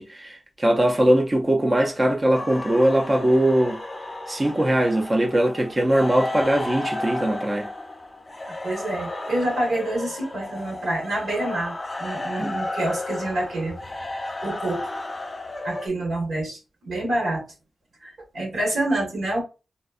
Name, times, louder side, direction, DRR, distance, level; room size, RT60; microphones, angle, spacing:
voice 1, 0.0-3.8 4.3-7.7 12.4-12.6, right 1 dB, 25° right, 0.5 m, -21 dB
sound 1, 2.3-15.9, left 2 dB, 25° left, 0.7 m, -33 dB
voice 2, 8.5-13.8 14.4-14.9 15.6-17.4 18.0-19.4, right 1 dB, 80° right, 1.4 m, -27 dB
4.1 x 2.2 x 2.4 m
wide cardioid pair, 100°, 0 cm